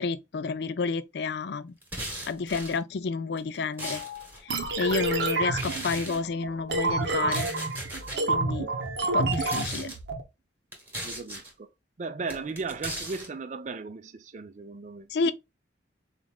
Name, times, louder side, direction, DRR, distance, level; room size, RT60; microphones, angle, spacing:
voice 1, 0.0-1.7 2.3-4.0 4.8-7.5 8.3-8.7 9.1-9.9 15.1-15.3, left 4 dB, 60° left, 0.4 m, -30 dB
sound 1, 1.8-2.8 3.4-4.4 5.5-6.2 7.2-8.2 9.2-10.0 10.7-11.5 12.3-13.3, right 1 dB, 10° right, 1.1 m, -37 dB
Piano, 3.8-7.9 8.4-8.5, left 9 dB, 85° left, 0.8 m, -47 dB
sound 2, 4.5-10.2, right 3 dB, 65° right, 0.8 m, -29 dB
voice 2, 11.0-11.7 12.0-15.3, right 4 dB, 40° right, 0.4 m, -36 dB
4.2 x 2.5 x 3.4 m
head